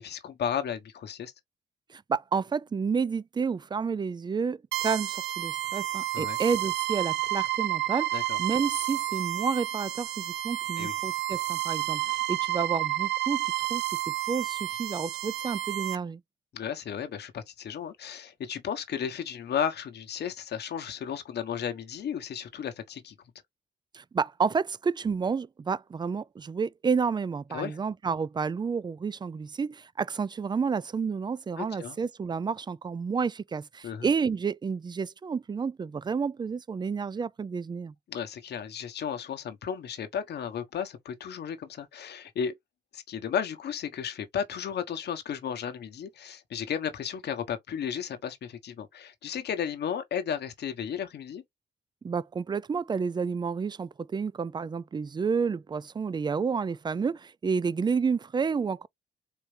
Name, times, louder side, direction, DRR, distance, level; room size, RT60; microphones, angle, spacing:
voice 1, 0.0-1.3 6.1-6.4 8.1-8.4 10.8-10.9 16.5-23.2 27.5-27.8 31.6-32.0 33.8-34.1 38.1-42.5 42.9-51.4, left 8 dB, 65° left, 1.1 m, -34 dB
voice 2, 1.9-16.2 23.9-37.9 52.0-58.9, right 5 dB, 25° right, 0.4 m, -30 dB
sound 1, 4.7-16.0, right 15 dB, 90° right, 0.5 m, -30 dB
4.5 x 3.2 x 3.3 m
supercardioid pair, 65°, 18 cm